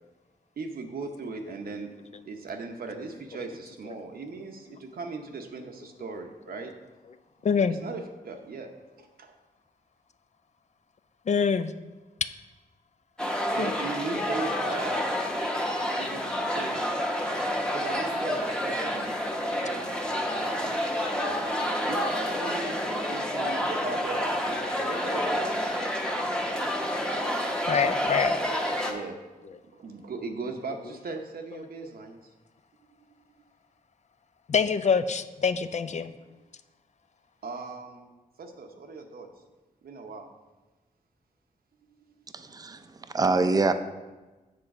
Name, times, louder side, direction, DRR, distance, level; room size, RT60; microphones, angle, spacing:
voice 1, 0.6-1.9 2.3-6.7 7.7-8.7 9.0-9.4 13.4-15.1 15.8-16.8 17.7-19.2 19.4-21.4 21.8-25.6 28.9-29.2 29.7-32.2 35.8-36.1 37.4-38.1 38.4-39.3 39.8-40.3, right 4 dB, 80° right, 4 dB, 0.9 m, -38 dB
voice 2, 7.4-7.8 11.3-11.7 13.6-13.7 23.0-23.2 27.7-28.3 34.5-36.1, left 6 dB, 50° left, 12 dB, 0.4 m, -25 dB
sound 1, 13.2-28.9, equal, 5° left, 0.8 m, -29 dB
voice 3, 42.3-42.8 43.1-43.7, right 3 dB, 25° right, 9 dB, 0.5 m, -24 dB
7.7 x 3.9 x 5.9 m, 1.2 s
wide cardioid pair, 85°, 15 cm